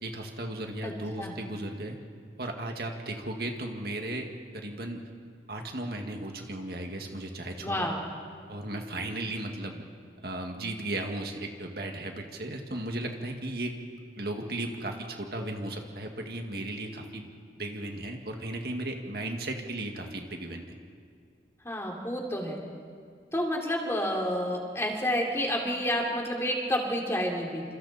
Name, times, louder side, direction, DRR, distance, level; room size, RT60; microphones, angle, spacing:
voice 1, 0.0-2.0 2.4-5.1 5.5-7.9 8.5-9.8 10.2-13.8 14.2-17.3 17.6-20.7, right 1 dB, 55° right, 3 dB, 2.1 m, -35 dB
voice 2, 7.6-8.0 21.6-22.6 23.3-27.6, equal, 15° left, 0 dB, 2.9 m, -29 dB
28.5 x 27.0 x 4.3 m, 2.2 s
head